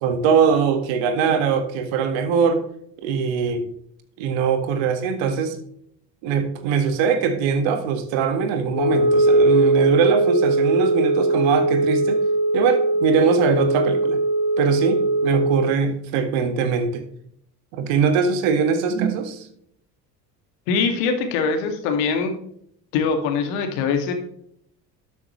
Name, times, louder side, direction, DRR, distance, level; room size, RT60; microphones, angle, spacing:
voice 1, 0.0-2.6 3.0-3.6 4.2-5.6 6.2-12.2 12.5-14.2 14.6-17.0 17.7-19.5, right 6 dB, 65° right, 8 dB, 1.8 m, -21 dB
Wind instrument woodwind instrument, 8.7-15.8, right 2 dB, 30° left, 3.5 m, -20 dB
voice 2, 20.7-22.3 22.9-24.1, left 5 dB, 65° left, 5 dB, 2.3 m, -22 dB
12.0 x 8.5 x 3.2 m, 0.69 s
hypercardioid pair, 65°, 50 cm